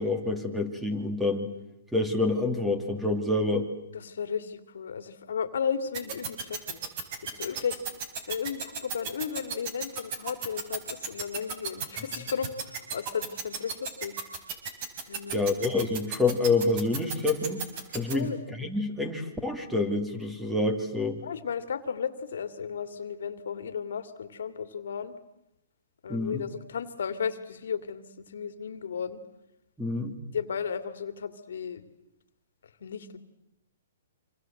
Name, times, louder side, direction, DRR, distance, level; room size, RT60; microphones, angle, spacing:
voice 1, 0.0-1.5 1.9-3.7 15.3-17.7 17.9-18.3 18.6-21.2 26.1-26.4 29.8-30.1, left 2 dB, 5° right, 8 dB, 2.9 m, -27 dB
voice 2, 3.9-6.8 7.2-7.8 8.3-14.2 15.1-15.5 18.1-18.4 21.2-25.1 26.0-29.2 30.3-31.8 32.8-33.2, left 7 dB, 75° left, 12 dB, 2.4 m, -34 dB
sound 1, 5.9-18.1, right 5 dB, 40° right, 4.9 m, -33 dB
27.0 x 26.5 x 7.8 m, 0.85 s
hypercardioid pair, 140°, 0 cm